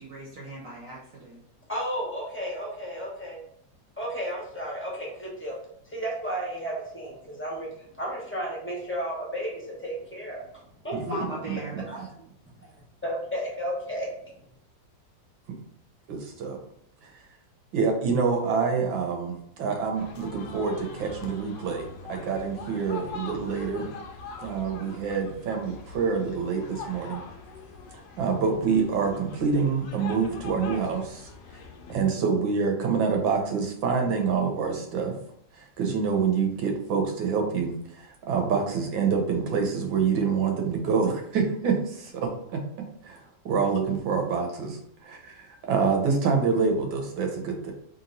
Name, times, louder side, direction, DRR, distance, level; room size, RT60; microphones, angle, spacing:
voice 1, 0.0-1.4 11.0-11.8, right 1 dB, 55° right, -4 dB, 1.5 m, -38 dB
voice 2, 1.7-3.4 4.0-5.6 5.9-7.7 8.0-10.4 10.8-11.2 11.8-12.0 12.6-12.7 13.0-14.1, equal, 10° left, -4 dB, 0.8 m, -33 dB
voice 3, 10.9-11.8 15.5-15.6 16.1-16.6 17.0-17.1 17.7-23.9 24.4-27.2 28.2-31.3 31.9-35.2 35.6-42.6 43.0-47.7, right 5 dB, 85° right, 2 dB, 1.6 m, -27 dB
sound 1, 20.0-32.0, left 4 dB, 75° left, 1.3 m, -43 dB
3.4 x 2.9 x 3.9 m, 0.70 s
omnidirectional pair, 2.0 m